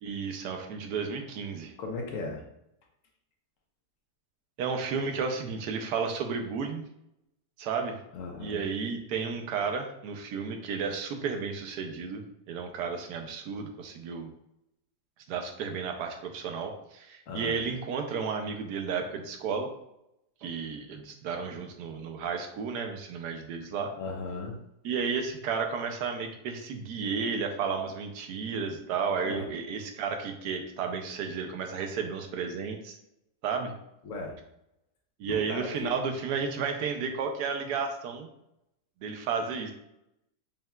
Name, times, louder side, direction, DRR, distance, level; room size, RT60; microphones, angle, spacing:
voice 1, 0.0-1.7 4.6-6.8 7.6-8.0 8.4-14.3 15.3-19.7 20.4-23.9 24.8-33.0 33.4-33.7 35.2-38.3 39.0-39.7, right 5 dB, 75° right, 5 dB, 1.1 m, -32 dB
voice 2, 1.8-2.4 8.1-8.7 17.3-17.6 23.9-24.6 29.2-29.4 34.0-34.4 35.2-35.9, left 3 dB, 60° left, 1 dB, 0.9 m, -36 dB
5.4 x 2.8 x 2.3 m, 0.83 s
omnidirectional pair, 1.8 m